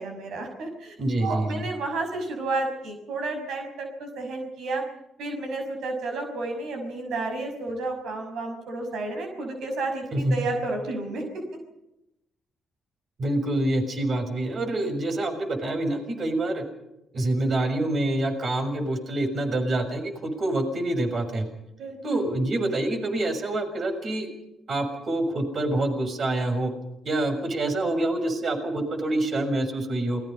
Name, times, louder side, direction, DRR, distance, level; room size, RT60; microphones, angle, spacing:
voice 1, 0.0-0.9 1.2-4.8 5.2-11.4 21.8-22.2, right 2 dB, 75° right, 4 dB, 5.8 m, -31 dB
voice 2, 1.0-1.6 10.1-10.5 13.2-16.6 17.1-21.5 22.0-24.3 24.7-26.7 27.0-30.2, right 1 dB, 50° right, 6 dB, 6.6 m, -26 dB
28.5 x 21.5 x 5.5 m, 0.90 s
cardioid pair, 90°, 0 cm